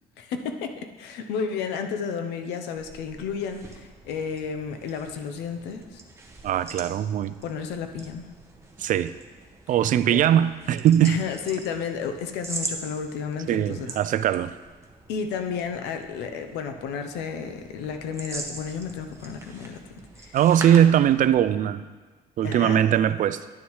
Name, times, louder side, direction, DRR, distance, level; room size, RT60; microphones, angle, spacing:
voice 1, 0.2-6.0 7.4-8.3 10.1-10.2 11.0-14.0 15.1-19.8 20.2-20.4 22.4-22.8, left 6 dB, 90° left, 6 dB, 0.8 m, -32 dB
sound 1, 2.7-21.6, right 2 dB, 15° right, 1.0 m, -42 dB
voice 2, 6.4-7.3 8.8-9.1 9.7-11.2 13.5-14.5 20.3-21.8 22.4-23.4, right 10 dB, 50° right, 14 dB, 0.4 m, -20 dB
10.5 x 7.0 x 3.2 m, 1.4 s
cardioid pair, 110°, 17 cm